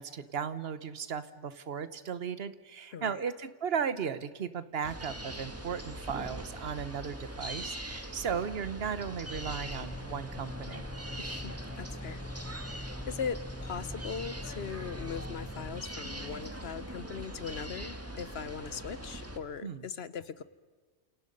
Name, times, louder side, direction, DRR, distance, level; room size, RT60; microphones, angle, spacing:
voice 1, 0.0-10.9 19.6-19.8, right 7 dB, 60° right, 13 dB, 1.3 m, -36 dB
voice 2, 2.9-3.2 11.2-12.2 12.5-20.4, left 6 dB, 65° left, 15 dB, 1.1 m, -40 dB
sound 1, 4.8-19.4, right 1 dB, 10° right, 1.6 m, -42 dB
sound 2, 9.3-15.8, left 1 dB, 10° left, 0.5 m, -43 dB
29.0 x 28.5 x 5.4 m, 1.4 s
omnidirectional pair, 1.2 m